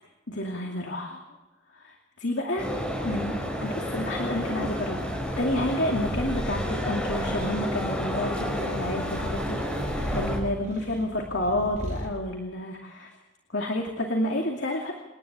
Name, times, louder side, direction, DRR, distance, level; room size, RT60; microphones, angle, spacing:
voice 1, 0.3-1.2 1.7-2.7 3.0-5.1 5.4-13.1 13.5-14.9, left 1 dB, 75° left, 1 dB, 2.5 m, -30 dB
sound 1, 2.6-10.4, equal, 5° left, 5.6 m, -31 dB
Purr, 5.3-12.2, equal, 40° right, 4.3 m, -37 dB
28.5 x 11.0 x 8.8 m, 1.1 s
head